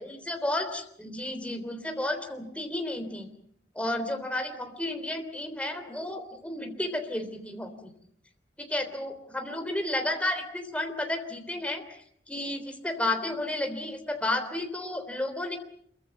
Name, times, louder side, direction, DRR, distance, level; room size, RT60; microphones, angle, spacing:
voice 1, 0.0-3.3 3.8-7.9 8.6-12.0 12.3-15.6, left 1 dB, 5° left, 5 dB, 3.5 m, -32 dB
27.0 x 23.5 x 7.1 m, 0.67 s
head